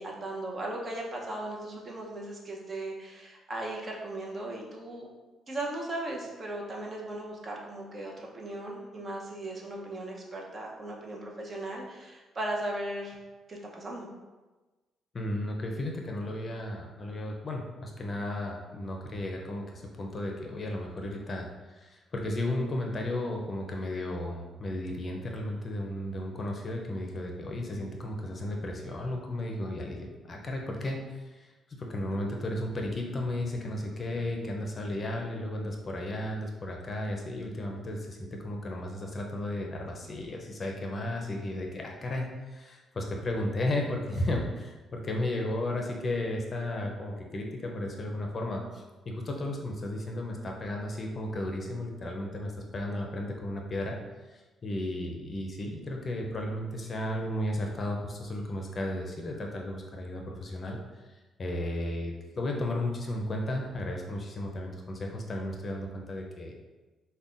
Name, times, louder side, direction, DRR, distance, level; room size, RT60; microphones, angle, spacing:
voice 1, 0.0-5.1 5.5-13.1 13.5-14.1, right 1 dB, 40° right, -1 dB, 0.7 m, -37 dB
voice 2, 15.1-54.0 54.3-60.8 61.1-66.5, left 1 dB, 40° left, 1 dB, 0.5 m, -34 dB
5.3 x 2.2 x 2.5 m, 1.2 s
cardioid pair, 90°, 0 cm